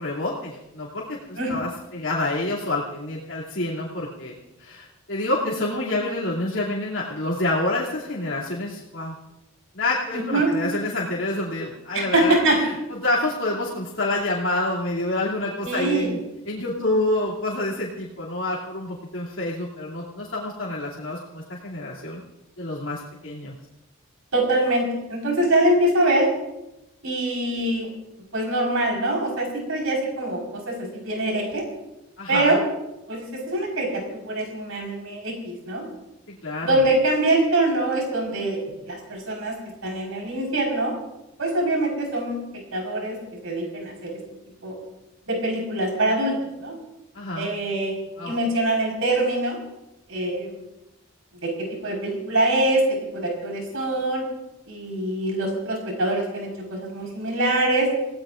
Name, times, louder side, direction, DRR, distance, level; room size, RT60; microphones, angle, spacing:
voice 1, 0.0-4.3 4.6-9.1 9.7-16.2 16.5-22.2 22.6-23.5 32.2-32.6 36.3-36.8 47.1-47.5 48.2-48.3, left 2 dB, 70° left, -6 dB, 2.9 m, -28 dB
voice 2, 10.1-10.5 11.9-12.6 15.6-16.1 24.3-26.3 27.0-27.9 28.3-31.6 32.3-32.6 33.1-35.9 36.6-38.6 38.8-39.5 39.8-40.9 41.4-42.4 42.7-43.2 43.4-44.2 44.6-44.7 45.3-46.8 47.3-47.9 48.2-49.6 50.1-50.6 51.4-54.2 54.7-57.9, right 1 dB, 90° right, -1 dB, 4.9 m, -24 dB
28.0 x 17.5 x 2.6 m, 0.93 s
head